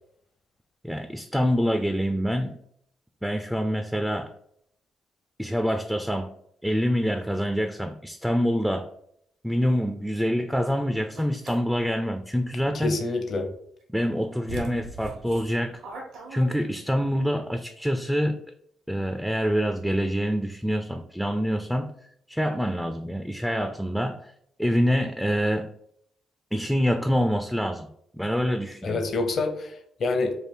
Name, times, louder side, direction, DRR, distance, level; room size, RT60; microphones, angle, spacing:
voice 1, 0.8-2.6 3.2-4.3 5.4-6.3 6.6-8.9 9.4-12.9 13.9-15.8 16.3-18.4 18.9-21.9 22.3-24.3 24.6-25.7 26.5-27.9 28.1-29.0, equal, ahead, 6 dB, 0.3 m, -26 dB
sound 1, 11.1-11.6 13.8-13.9 14.5-17.0, right 3 dB, 85° right, 1.3 m, -39 dB
voice 2, 12.7-13.5 28.8-30.3, left 3 dB, 50° left, 5 dB, 0.6 m, -27 dB
3.3 x 2.5 x 4.4 m, 0.70 s
cardioid pair, 90°, 0 cm